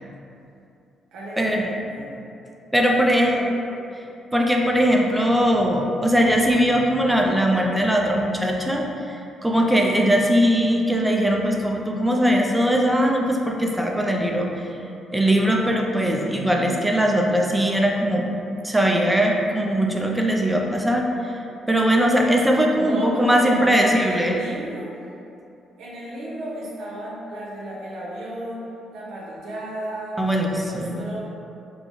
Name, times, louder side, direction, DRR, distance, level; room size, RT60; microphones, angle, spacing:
voice 1, 1.1-2.2 2.9-3.5 22.8-24.9 25.8-28.6 28.9-30.2 30.5-31.2, right 1 dB, 80° right, -5 dB, 0.8 m, -33 dB
voice 2, 2.7-3.4 4.3-9.2 9.4-14.5 15.1-18.3 18.6-21.0 21.7-24.4 30.2-31.0, equal, 5° right, 0 dB, 0.4 m, -20 dB
4.0 x 2.2 x 3.1 m, 2.7 s
cardioid pair, 90°, 0 cm